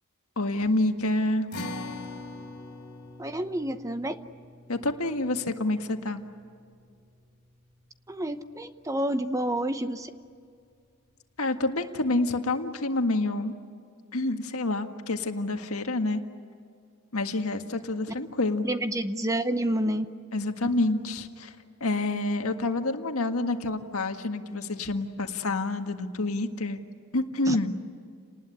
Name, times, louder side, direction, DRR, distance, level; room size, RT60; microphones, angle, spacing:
voice 1, 0.4-1.5 4.7-6.2 11.4-13.5 14.1-16.2 17.1-18.7 20.3-21.5 21.8-26.8 27.1-27.7, left 2 dB, 75° left, 6 dB, 1.8 m, -28 dB
sound 1, 1.5-8.1, left 2 dB, 55° left, 3.6 m, -43 dB
voice 2, 3.2-4.2 8.1-10.1 18.6-20.1 27.5-27.6, right 1 dB, 15° right, 10 dB, 0.8 m, -29 dB
30.0 x 20.0 x 9.8 m, 2.3 s
head